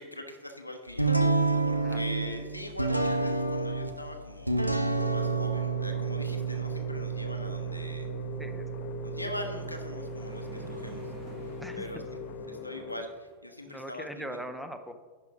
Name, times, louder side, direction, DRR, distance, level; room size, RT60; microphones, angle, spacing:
voice 1, 0.0-4.7 5.1-8.1 9.0-11.1 11.4-12.0 12.5-14.4, left 1 dB, 85° left, 4 dB, 1.0 m, -42 dB
sound 1, 1.0-12.4, right 4 dB, 90° right, 0.6 m, -31 dB
sound 2, 4.9-13.0, left 6 dB, 45° left, 0.8 m, -42 dB
sound 3, 7.8-13.4, right 4 dB, 35° right, 2.4 m, -52 dB
voice 2, 13.7-14.9, equal, ahead, 7 dB, 0.7 m, -40 dB
10.5 x 5.0 x 4.8 m, 1.4 s
figure-of-eight pair, 90°, 0 cm